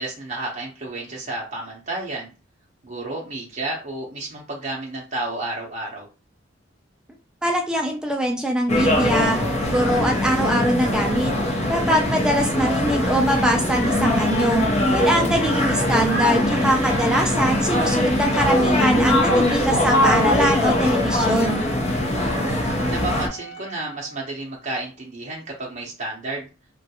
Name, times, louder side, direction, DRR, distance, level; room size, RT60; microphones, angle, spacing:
voice 1, 0.0-2.3 2.8-6.1 16.6-17.3 22.1-22.6 22.9-26.5, right 2 dB, 40° right, -3 dB, 0.7 m, -31 dB
voice 2, 7.4-9.4 9.7-11.3 11.7-14.6 14.9-21.6, equal, 5° right, 1 dB, 0.4 m, -22 dB
sound 1, 8.7-23.3, left 1 dB, 35° left, 0.7 m, -21 dB
Wind instrument woodwind instrument, 20.1-24.3, equal, 70° left, 0.8 m, -41 dB
3.6 x 2.2 x 2.8 m, 0.32 s
head